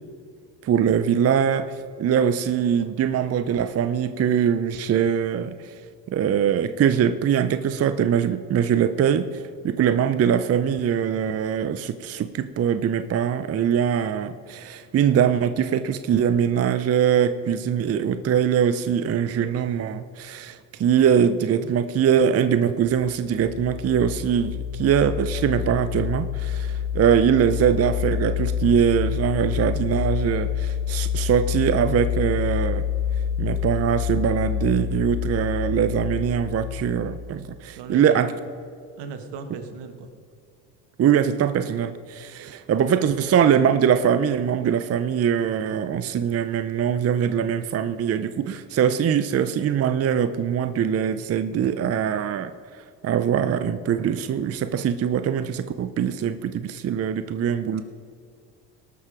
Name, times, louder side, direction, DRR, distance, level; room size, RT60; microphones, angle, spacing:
voice 1, 0.6-5.8 6.1-32.8 33.4-38.3 41.0-57.8, right 8 dB, 35° right, 11 dB, 0.6 m, -22 dB
sound 1, 23.3-37.4, left 8 dB, 85° left, 2.0 m, -27 dB
voice 2, 37.7-38.4 39.0-40.1 57.7-57.8, right 4 dB, 70° right, 7 dB, 1.5 m, -36 dB
19.0 x 6.6 x 4.9 m, 2.2 s
supercardioid pair, 85°, 43 cm